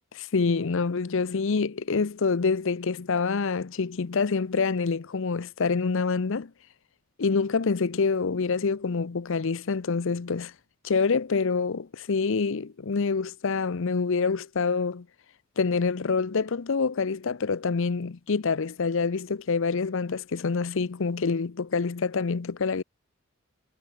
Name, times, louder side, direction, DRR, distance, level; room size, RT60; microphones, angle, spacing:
voice 1, 0.1-6.5 7.2-10.5 10.8-15.1 15.6-22.8, left 4 dB, 65° left, 0.6 m, -26 dB
head